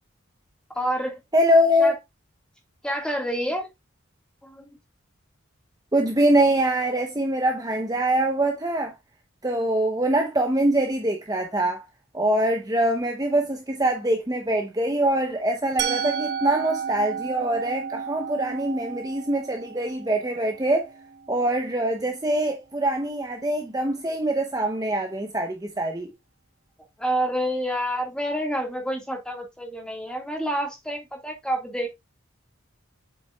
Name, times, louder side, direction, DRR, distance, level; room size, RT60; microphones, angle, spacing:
voice 1, 0.7-1.2 1.8-1.9 2.8-3.7 4.4-4.7 27.0-31.9, equal, 5° left, 1.7 m, -28 dB
voice 2, 1.3-1.9 5.9-8.9 9.4-11.9 12.1-20.9 21.3-26.1, right 1 dB, 20° right, 0.7 m, -23 dB
Musical instrument, 15.8-21.7, right 7 dB, 55° right, 0.9 m, -32 dB
7.7 x 5.9 x 2.3 m
head